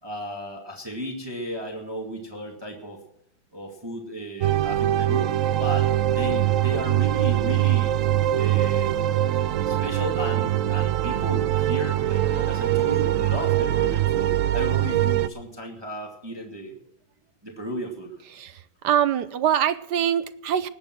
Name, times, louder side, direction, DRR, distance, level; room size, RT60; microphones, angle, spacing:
voice 1, 0.0-3.0 3.5-7.9 8.4-8.9 9.6-16.8 17.4-18.1, equal, 15° right, 1 dB, 2.1 m, -34 dB
sound 1, 4.4-15.3, right 13 dB, 90° right, 0.7 m, -23 dB
voice 2, 18.3-20.7, right 9 dB, 70° right, 14 dB, 1.1 m, -24 dB
19.5 x 8.6 x 5.9 m, 0.81 s
omnidirectional pair, 2.1 m